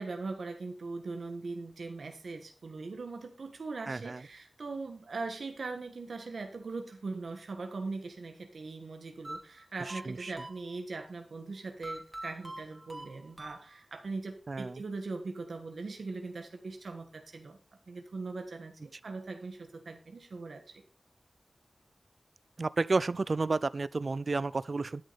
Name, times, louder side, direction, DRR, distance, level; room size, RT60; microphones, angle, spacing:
voice 1, 0.0-17.6 17.9-20.8, right 3 dB, 85° right, 1.6 m, -40 dB
voice 2, 3.9-4.2 9.9-10.3 14.5-14.8 22.6-25.0, right 3 dB, 55° right, 0.4 m, -31 dB
sound 1, 9.2-11.1 11.8-14.1, right 1 dB, 15° right, 2.6 m, -44 dB
12.5 x 6.4 x 4.2 m
wide cardioid pair, 65°, 0 cm